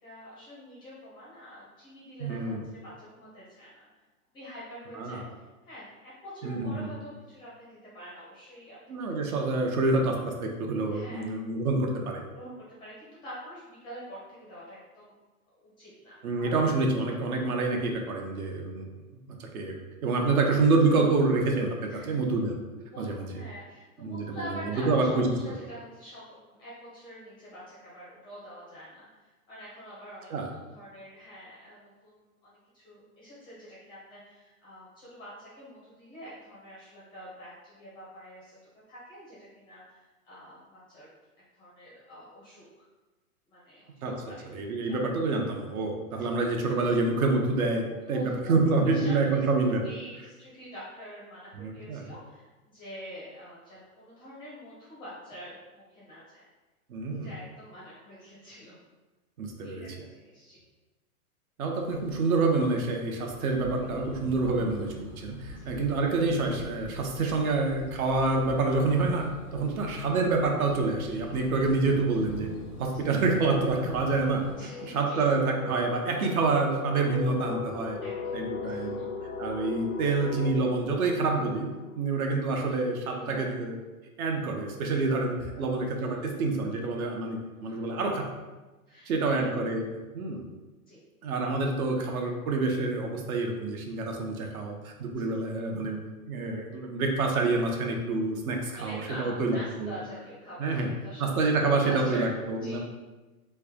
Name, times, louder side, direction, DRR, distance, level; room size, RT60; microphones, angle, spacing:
voice 1, 0.0-3.9 4.3-5.3 5.6-8.8 9.0-9.1 9.7-9.8 10.9-11.3 12.3-15.1 15.6-16.6 20.2-20.7 21.9-22.3 22.9-38.6 38.9-41.1 41.5-42.8 43.5-44.4 44.9-45.0 46.2-46.3 46.8-46.9 48.1-48.5 48.8-49.4 49.8-56.5 57.1-58.8 59.6-60.6 65.6-65.7 69.7-69.8 71.5-71.7 72.9-73.1 74.6-75.3 78.0-79.1 83.1-83.5 85.5-85.8 86.1-86.3 87.5-87.9 88.9-89.5 90.9-91.0 98.7-102.8, equal, 10° left, -8 dB, 0.4 m, -46 dB
voice 2, 2.2-2.6 5.0-5.2 6.4-6.9 8.9-12.2 16.2-18.9 19.4-22.5 23.0-23.3 24.0-25.3 30.3-30.5 44.0-44.2 44.4-49.8 51.6-52.0 56.9-57.3 59.4-59.9 61.6-69.2 69.5-72.5 72.8-78.0 78.3-79.0 79.4-81.7 81.9-83.8 84.2-88.3 89.1-89.9 90.1-90.4 91.2-100.0 100.6-100.9 101.2-102.8, right 3 dB, 70° right, 2 dB, 0.8 m, -27 dB
sound 1, 61.8-74.6, equal, 90° right, 1.1 m, -44 dB
sound 2, 71.2-82.7, left 5 dB, 80° left, 0.6 m, -39 dB
3.2 x 2.1 x 3.5 m, 1.2 s
hypercardioid pair, 130°, 45 cm